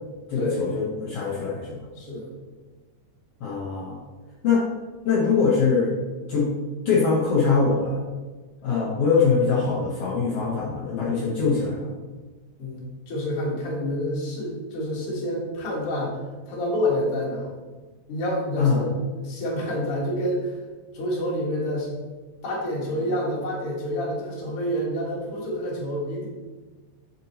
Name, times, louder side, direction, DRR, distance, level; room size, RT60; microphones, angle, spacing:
voice 1, 0.3-1.8 3.4-4.0 4.4-4.6 5.0-5.9 6.3-6.5 6.8-8.0 8.6-11.9 18.6-18.9, left 5 dB, 80° left, -5 dB, 1.3 m, -22 dB
voice 2, 2.0-2.3 12.6-16.2 16.5-17.5 18.1-20.6 20.9-21.9 22.4-26.3, equal, 50° left, -5 dB, 2.0 m, -28 dB
7.6 x 5.2 x 2.8 m, 1.3 s
omnidirectional pair, 4.0 m